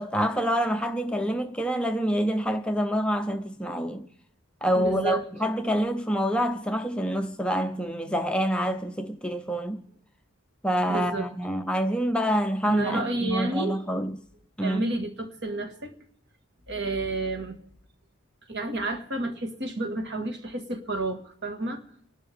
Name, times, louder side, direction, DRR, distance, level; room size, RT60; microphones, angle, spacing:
voice 1, 0.0-4.0 4.6-9.8 10.6-14.2 14.6-14.8, equal, 5° left, 0.6 m, -27 dB
voice 2, 4.8-5.2 10.9-11.3 12.7-13.8 14.6-15.9 16.7-17.6 18.5-21.8, right 2 dB, 50° right, 2.0 m, -30 dB
29.5 x 12.0 x 3.6 m
head